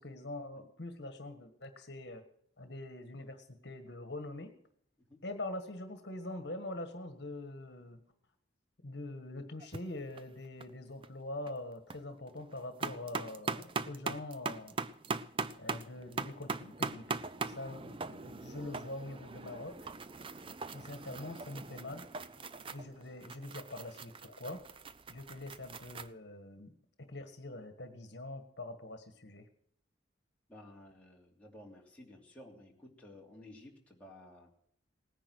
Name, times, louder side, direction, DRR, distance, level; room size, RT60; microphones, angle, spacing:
voice 1, 0.0-2.2 2.6-4.5 5.2-8.0 8.8-14.7 15.6-17.2 17.5-19.9 20.7-22.1 22.7-24.6 25.1-26.7 27.1-29.4, left 2 dB, 60° left, 7 dB, 1.6 m, -44 dB
sound 1, 9.6-9.8 10.1-10.7 11.0-11.1 11.5-12.0 12.3-26.1, right 4 dB, 25° right, 0.5 m, -41 dB
voice 2, 30.5-34.5, left 1 dB, 5° left, -3 dB, 3.0 m, -54 dB
18.5 x 10.0 x 6.3 m, 0.68 s
head